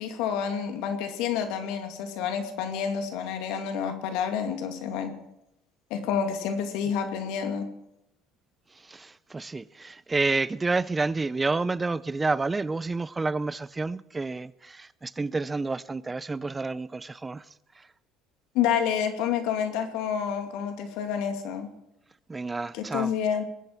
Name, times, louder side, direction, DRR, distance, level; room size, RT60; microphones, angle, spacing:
voice 1, 0.0-5.1 5.9-7.7 18.5-21.7 22.7-23.4, left 8 dB, 70° left, 2.5 m, -29 dB
voice 2, 8.8-17.4 22.3-23.1, right 3 dB, 20° right, 0.5 m, -29 dB
21.0 x 8.8 x 7.4 m
hypercardioid pair, 70°, 0 cm